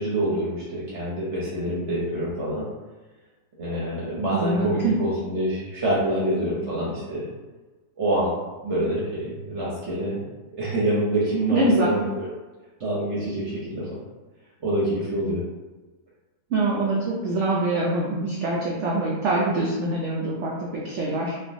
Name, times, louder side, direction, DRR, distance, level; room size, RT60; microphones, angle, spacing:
voice 1, 0.0-2.7 3.6-7.3 8.0-8.3 8.6-10.3 10.6-12.3 12.8-14.0 14.6-15.4, right 1 dB, 60° right, -7 dB, 0.8 m, -26 dB
voice 2, 4.3-4.9 11.5-11.9 16.5-21.4, right 2 dB, 90° right, -4 dB, 0.6 m, -24 dB
3.2 x 2.2 x 2.5 m, 1.2 s
omnidirectional pair, 1.8 m